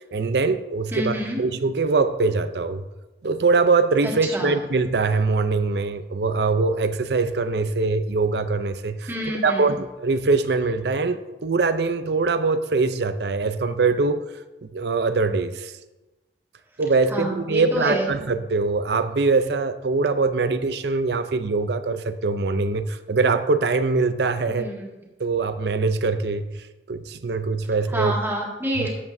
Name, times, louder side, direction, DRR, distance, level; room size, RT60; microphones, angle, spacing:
voice 1, 0.1-2.8 3.2-9.1 9.4-14.2 14.6-15.7 16.8-24.7 25.2-26.4 26.9-28.1 28.8-28.9, right 4 dB, 65° right, 11 dB, 0.5 m, -23 dB
voice 2, 0.9-1.4 4.0-4.5 9.1-9.7 17.1-18.1 24.5-24.9 27.9-28.9, equal, 15° right, -3 dB, 2.0 m, -27 dB
12.5 x 8.2 x 2.7 m, 1.1 s
head